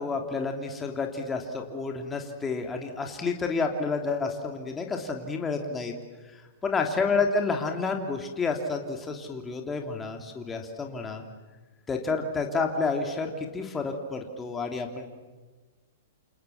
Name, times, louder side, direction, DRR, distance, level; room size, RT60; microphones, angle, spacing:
voice 1, 0.0-5.9 6.6-11.2 11.9-15.1, left 4 dB, 15° left, 3 dB, 3.3 m, -30 dB
28.5 x 28.5 x 7.3 m, 1.3 s
hypercardioid pair, 110°, 0 cm